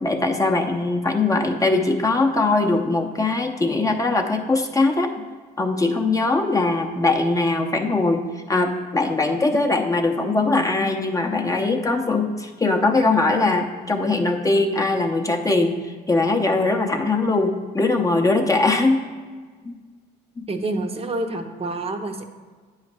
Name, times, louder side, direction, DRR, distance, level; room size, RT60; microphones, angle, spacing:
voice 1, 0.0-5.2 5.6-19.1 19.6-19.7 20.4-20.5, left 3 dB, 15° left, 2 dB, 0.7 m, -21 dB
voice 2, 20.5-22.2, right 2 dB, 30° right, 4 dB, 0.7 m, -27 dB
8.7 x 3.2 x 6.0 m, 1.5 s
supercardioid pair, 75°, 20 cm